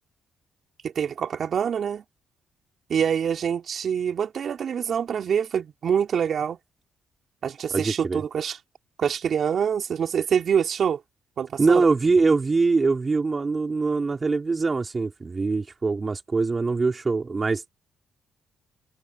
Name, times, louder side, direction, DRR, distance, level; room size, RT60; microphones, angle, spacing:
voice 1, 0.8-2.0 2.9-6.6 7.4-8.6 9.0-11.0 11.4-11.8, right 7 dB, 55° right, 5.3 m, -25 dB
voice 2, 7.7-8.2 11.6-17.7, right 4 dB, 30° right, 5.4 m, -23 dB
cardioid pair, 90°, 0 cm